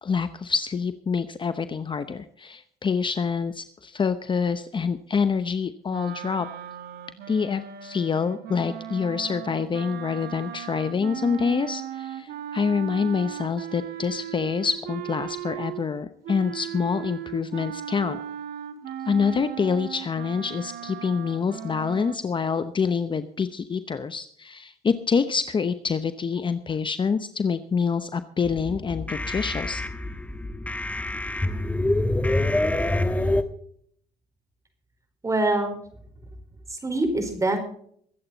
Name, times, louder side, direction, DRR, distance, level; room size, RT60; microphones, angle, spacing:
voice 1, 0.0-6.5 7.3-18.2 19.1-29.8, left 5 dB, 30° left, 11 dB, 0.8 m, -26 dB
sound 1, 5.9-15.9 16.2-22.2, right 10 dB, 70° right, 2.1 m, -37 dB
sound 2, 28.4-33.4, left 1 dB, 10° left, 1.3 m, -26 dB
voice 2, 35.2-35.8 36.7-37.6, right 2 dB, 20° right, 5 dB, 4.5 m, -24 dB
23.0 x 8.7 x 4.1 m, 0.64 s
cardioid pair, 110°, 17 cm